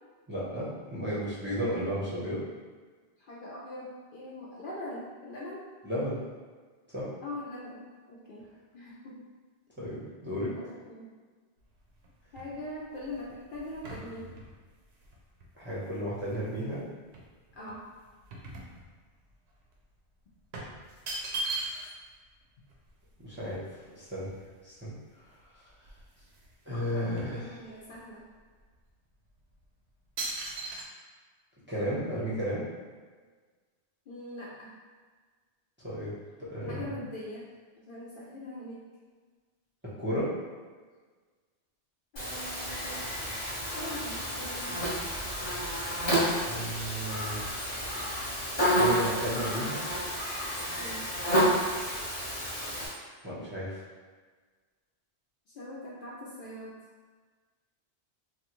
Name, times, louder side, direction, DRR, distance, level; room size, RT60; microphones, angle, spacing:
voice 1, 0.3-2.4 5.8-6.2 6.9-7.1 9.8-10.5 15.6-16.8 23.2-23.6 24.0-24.3 24.6-24.9 26.7-27.4 31.7-32.7 35.8-36.1 36.4-36.9 40.0-40.3 46.5-47.4 48.7-49.8 53.2-53.8, equal, 15° right, -10 dB, 0.6 m, -33 dB
voice 2, 3.2-5.7 7.2-8.5 8.7-9.3 10.6-11.1 12.3-14.4 17.5-17.9 26.7-28.2 34.1-34.7 36.7-37.5 37.8-38.8 42.1-43.0 43.8-44.7 50.8-51.0 55.5-56.8, left 1 dB, 60° left, -6 dB, 0.6 m, -42 dB
sound 1, 11.6-16.7 17.1-19.3 19.6-19.8 20.5-22.1 22.4-22.5 22.7-24.9 25.4-25.5 25.8-26.5 26.8-28.0 28.6-28.8 29.4-29.6 30.2-30.8, right 2 dB, 70° right, 0.8 m, -40 dB
Buzz, 42.2-52.9, equal, 35° left, 1.0 m, -30 dB
3.2 x 2.2 x 2.9 m, 1.4 s
omnidirectional pair, 1.1 m